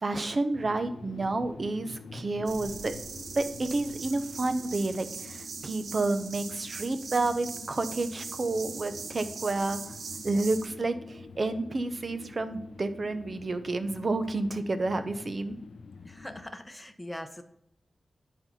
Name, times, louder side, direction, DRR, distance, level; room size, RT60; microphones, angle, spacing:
voice 1, 0.0-2.9 3.4-9.8 10.2-15.6, right 2 dB, 45° right, 9 dB, 0.8 m, -30 dB
sound 1, 0.5-16.5, left 4 dB, 75° left, 0.5 m, -47 dB
sound 2, 2.5-10.7, right 5 dB, 80° right, 0.5 m, -41 dB
voice 2, 16.0-17.4, left 1 dB, 10° left, 6 dB, 0.8 m, -41 dB
9.3 x 4.5 x 4.0 m, 0.76 s
wide cardioid pair, 80°, 0 cm